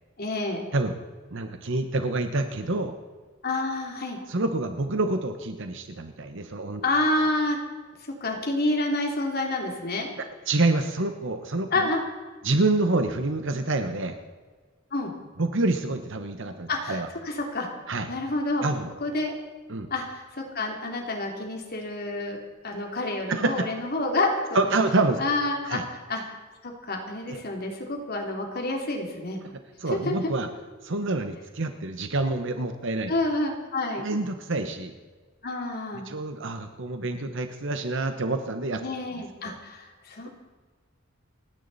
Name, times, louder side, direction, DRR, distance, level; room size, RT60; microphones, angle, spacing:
voice 1, 0.2-0.6 3.4-4.2 6.8-7.6 8.2-10.1 11.7-12.0 14.9-15.1 16.7-17.7 18.1-18.7 19.0-19.4 19.9-20.2 20.5-24.7 25.2-25.8 26.1-26.3 26.6-29.4 29.9-30.3 33.1-34.0 35.4-36.1 38.8-40.3, left 2 dB, 50° left, 1 dB, 3.0 m, -28 dB
voice 2, 1.3-2.9 4.3-6.8 10.2-11.9 12.4-14.1 15.4-17.1 17.9-18.1 18.6-18.9 19.7-19.9 23.3-23.7 24.5-25.4 25.6-25.8 27.3-27.4 29.8-30.5 30.8-33.1 34.0-34.9 36.1-38.8 39.4-39.6, right 2 dB, 65° right, 7 dB, 1.1 m, -27 dB
29.5 x 10.0 x 4.2 m, 1.4 s
head